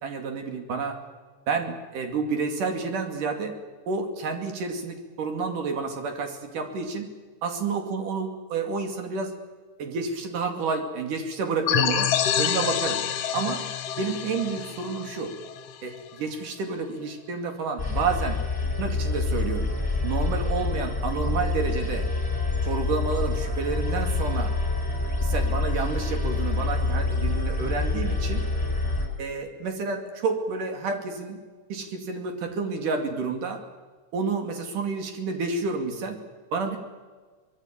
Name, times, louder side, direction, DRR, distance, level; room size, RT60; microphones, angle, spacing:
voice 1, 0.0-1.0 1.5-3.6 3.9-7.1 7.4-9.4 9.8-13.0 13.3-13.7 14.0-15.4 15.8-18.4 18.8-19.7 20.0-22.1 22.6-24.5 25.2-28.5 29.2-31.4 31.7-33.6 34.1-36.2 36.5-36.8, right 4 dB, 90° right, 5 dB, 4.1 m, -30 dB
sound 1, 11.7-16.1, left 9 dB, 60° left, 1.9 m, -27 dB
sound 2, 17.8-29.1, left 3 dB, 5° left, 4.6 m, -26 dB
24.0 x 21.0 x 8.8 m, 1.4 s
omnidirectional pair, 3.6 m